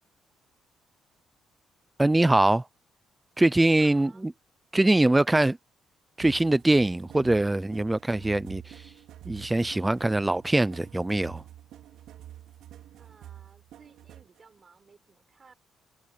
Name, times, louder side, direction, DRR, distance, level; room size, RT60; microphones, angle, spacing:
voice 1, 2.0-2.6 3.4-4.1 4.7-5.6 6.2-8.6 9.3-11.4, right 2 dB, 15° right, 0.3 m, -22 dB
voice 2, 3.6-4.3 13.0-15.5, right 5 dB, 35° right, 5.7 m, -56 dB
sound 1, 6.2-14.4, right 12 dB, 85° right, 4.4 m, -47 dB
cardioid pair, 90°, 0 cm